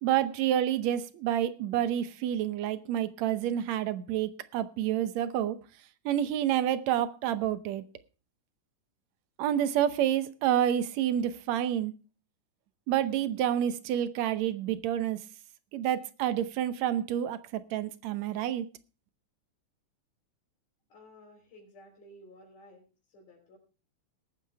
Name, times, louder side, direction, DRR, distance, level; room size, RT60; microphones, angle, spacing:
voice 1, 0.0-5.6 6.1-7.8 9.4-11.9 12.9-15.2 15.7-18.7, right 11 dB, 70° right, 1.9 m, -28 dB
voice 2, 20.9-23.6, left 1 dB, 85° left, 5.1 m, -54 dB
20.0 x 9.0 x 3.4 m
omnidirectional pair, 3.5 m